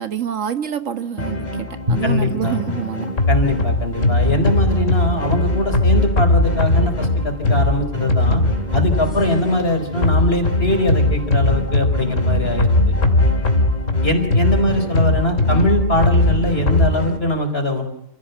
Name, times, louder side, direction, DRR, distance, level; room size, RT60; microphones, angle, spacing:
voice 1, 0.0-3.1 15.5-15.7, right 9 dB, 80° right, 10 dB, 1.7 m, -27 dB
sound 1, 1.2-17.2, equal, 35° left, 3.2 m, -27 dB
Drum, 1.9-4.8, left 1 dB, 40° right, 1.8 m, -30 dB
voice 2, 2.0-2.6 3.3-8.4 8.7-12.9 14.0-17.8, left 1 dB, 50° left, 5 dB, 4.6 m, -21 dB
sound 2, 3.2-9.2 10.0-16.9, left 2 dB, 80° left, 2.8 m, -19 dB
29.0 x 16.0 x 8.1 m, 0.78 s
omnidirectional pair, 1.3 m